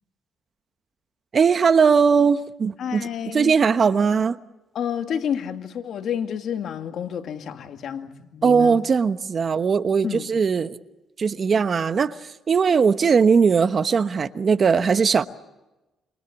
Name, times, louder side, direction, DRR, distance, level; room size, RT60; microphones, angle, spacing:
voice 1, 1.3-3.1 3.3-4.4 8.4-10.8 11.2-12.1 12.5-15.2, right 5 dB, 45° right, 1.1 m, -19 dB
voice 2, 2.8-3.5 4.7-8.8 10.0-10.3, left 8 dB, 65° left, 2.3 m, -29 dB
27.5 x 27.0 x 7.2 m
cardioid pair, 90°, 0 cm